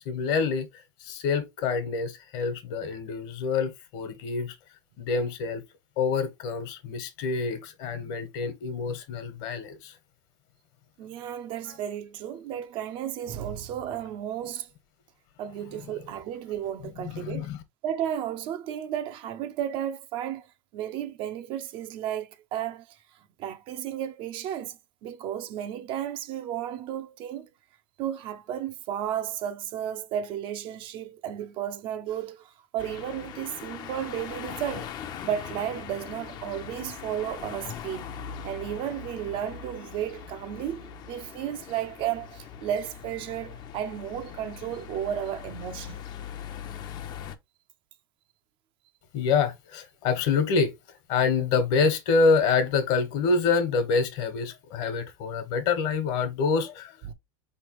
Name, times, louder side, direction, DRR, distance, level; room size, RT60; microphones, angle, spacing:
voice 1, 0.0-4.5 5.0-5.6 6.0-10.0 17.0-17.6 49.1-50.7 51.1-57.0, left 5 dB, 60° left, 1.3 m, -26 dB
voice 2, 11.0-14.7 15.4-17.5 17.8-20.5 20.7-23.0 23.4-27.5 28.0-35.0 35.2-38.1 38.4-46.0 57.0-57.1, right 10 dB, 45° right, 0.6 m, -33 dB
sound 1, 32.8-47.4, left 8 dB, 40° left, 0.6 m, -41 dB
4.2 x 3.3 x 3.0 m
supercardioid pair, 120°, 11 cm